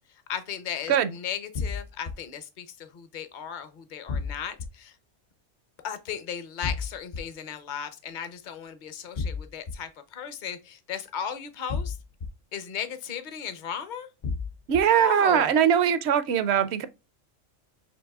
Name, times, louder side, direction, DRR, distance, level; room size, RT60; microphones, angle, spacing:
voice 1, 0.3-5.0 5.8-12.0 12.5-14.1 14.8-15.5, left 8 dB, 45° left, 0.8 m, -36 dB
sound 1, 1.5-2.1 4.1-4.7 6.6-7.2 9.2-9.7 11.7-12.3 14.2-14.8, left 4 dB, 80° left, 0.3 m, -30 dB
voice 2, 14.7-16.9, right 8 dB, 65° right, 0.8 m, -21 dB
7.1 x 3.1 x 2.3 m
omnidirectional pair, 1.3 m